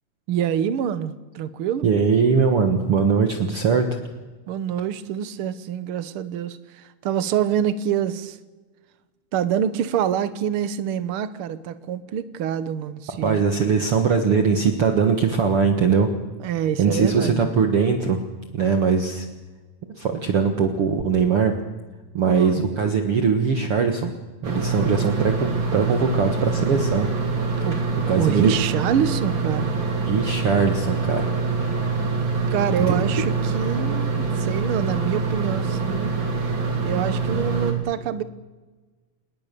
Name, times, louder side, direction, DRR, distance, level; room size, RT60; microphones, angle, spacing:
voice 1, 0.3-1.9 4.5-8.4 9.3-13.4 16.4-17.5 22.2-22.7 27.6-27.8 28.2-29.8 32.4-38.2, right 9 dB, 70° right, 13 dB, 1.3 m, -26 dB
voice 2, 1.8-3.9 13.2-16.1 16.8-18.2 18.5-19.2 20.0-21.5 22.1-24.1 24.4-27.1 28.1-28.5 30.1-31.3 32.8-33.0, right 5 dB, 50° right, 5 dB, 2.0 m, -21 dB
sound 1, 24.4-37.7, right 4 dB, 35° right, 3.5 m, -25 dB
27.0 x 20.5 x 6.8 m, 1.3 s
omnidirectional pair, 3.9 m